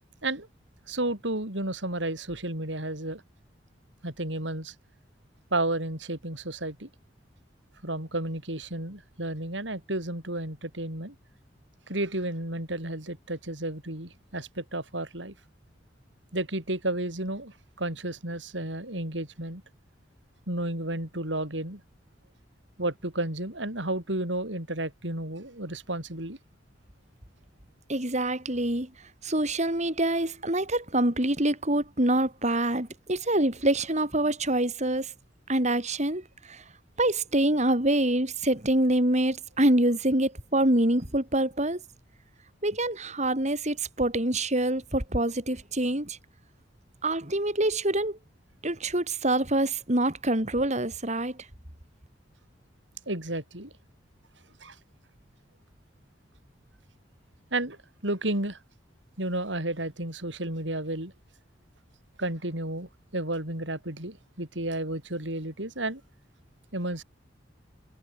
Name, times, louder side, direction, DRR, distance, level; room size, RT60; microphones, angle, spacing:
voice 1, 0.9-3.2 4.0-4.7 5.5-6.9 7.8-11.1 11.9-15.3 16.3-19.6 20.5-21.8 22.8-26.4 53.1-53.7 54.6-54.8 57.5-57.8 58.0-58.6 59.2-61.1 62.2-66.0 66.7-67.0, right 1 dB, 80° right, 6.3 m, -32 dB
voice 2, 27.9-28.9 29.2-35.1 35.5-36.6 37.0-41.8 42.6-46.2 47.0-48.2 48.6-51.4, right 1 dB, 40° right, 5.8 m, -25 dB
head